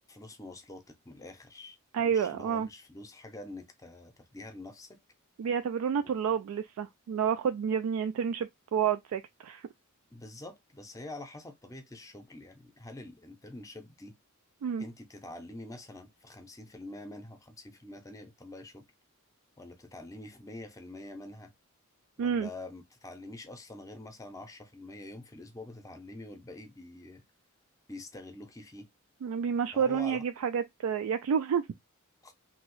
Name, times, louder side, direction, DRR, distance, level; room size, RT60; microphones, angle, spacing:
voice 1, 0.1-1.8 2.0-5.0 6.0-6.1 10.1-14.1 14.8-18.8 19.6-21.5 22.2-27.2 27.9-28.9 29.7-30.2 32.2-32.3, left 2 dB, 15° left, 0.6 m, -46 dB
voice 2, 1.9-2.7 5.4-9.7 14.6-14.8 22.2-22.5 29.2-31.7, right 7 dB, 80° right, 0.3 m, -29 dB
3.0 x 2.7 x 3.0 m
head